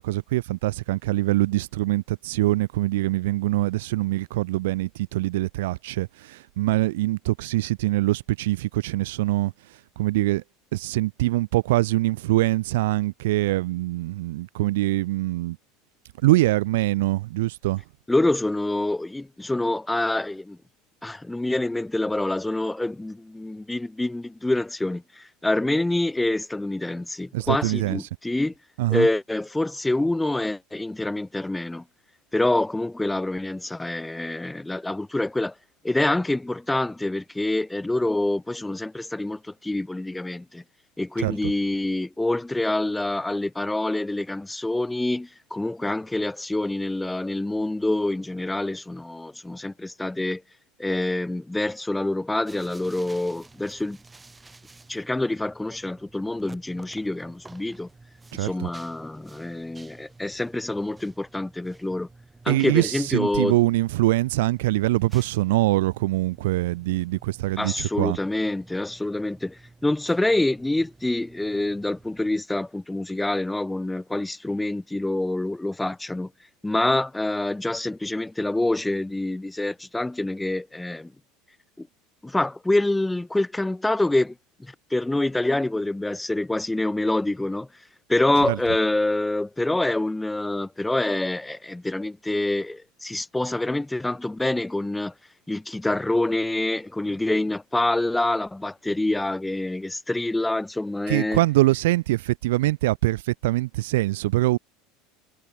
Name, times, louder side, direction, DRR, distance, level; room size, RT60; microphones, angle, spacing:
voice 1, 0.0-9.5 10.0-10.4 10.7-15.6 16.2-17.8 27.3-28.0 28.8-29.1 41.2-41.5 58.3-58.7 62.5-68.2 88.4-88.6 101.1-104.6, right 18 dB, 85° right, 2.2 m, -23 dB
voice 2, 18.1-20.6 21.0-28.5 28.9-31.8 32.3-35.5 35.8-40.6 41.0-50.4 50.8-54.0 54.9-57.9 58.3-62.1 62.4-63.5 67.6-76.3 76.6-81.1 81.8-81.9 82.2-84.3 84.6-87.7 88.1-95.1 95.5-101.4, left 2 dB, 5° left, 1.7 m, -26 dB
sound 1, 52.5-72.4, right 3 dB, 10° right, 6.7 m, -51 dB
supercardioid pair, 140°, 0 cm